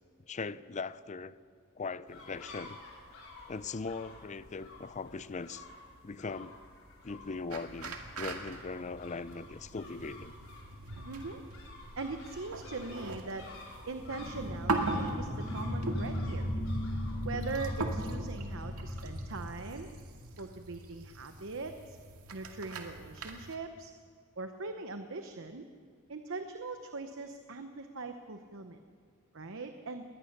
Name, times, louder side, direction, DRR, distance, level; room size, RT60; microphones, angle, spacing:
voice 1, 0.3-1.3 1.8-2.8 3.5-5.7 6.0-6.6 7.0-10.3, left 4 dB, 35° left, 16 dB, 0.5 m, -40 dB
sound 1, 2.1-17.7, left 2 dB, 65° left, 5.6 m, -51 dB
sound 2, 7.5-23.6, right 3 dB, 85° right, 2.2 m, -41 dB
voice 2, 11.1-11.4 12.0-13.5 13.9-16.5 17.2-19.9 20.4-22.0 22.3-23.9 24.4-25.6 26.1-28.8 29.3-30.0, right 3 dB, 60° right, 7 dB, 0.9 m, -41 dB
sound 3, 14.0-20.4, left 1 dB, ahead, 2.5 m, -37 dB
20.5 x 19.0 x 6.7 m, 2.1 s
head